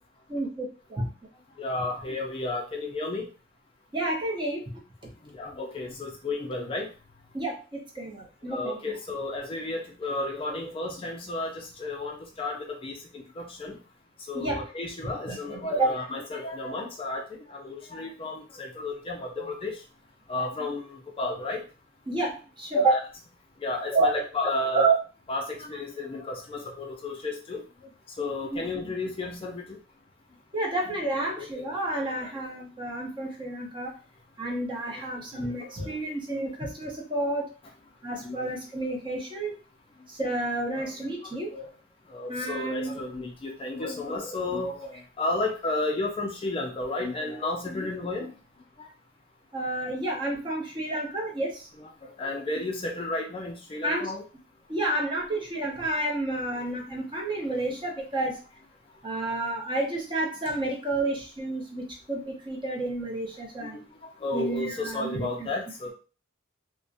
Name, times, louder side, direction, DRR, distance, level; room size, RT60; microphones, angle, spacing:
voice 1, 0.3-1.1 3.9-4.8 7.3-8.8 14.3-14.6 15.0-15.9 22.1-23.0 23.9-24.2 24.7-24.9 28.5-28.6 30.5-33.9 34.4-37.5 38.0-39.5 40.1-41.6 42.3-42.9 49.5-51.7 53.8-54.1 54.7-58.4 59.0-63.8 64.3-65.3, right 2 dB, 25° right, -1 dB, 0.6 m, -30 dB
voice 2, 1.6-3.3 5.3-6.9 8.5-13.8 14.3-19.8 20.3-21.6 22.8-23.0 23.6-24.9 25.3-27.6 28.2-29.8 31.4-32.3 35.3-35.4 35.8-35.9 38.1-38.7 40.8-41.7 42.1-48.3 48.8-48.9 51.8-54.2 55.7-55.8 57.7-57.8 63.6-63.8 64.2-65.9, left 2 dB, 30° left, 2 dB, 0.3 m, -33 dB
2.4 x 2.0 x 2.5 m, 0.35 s
head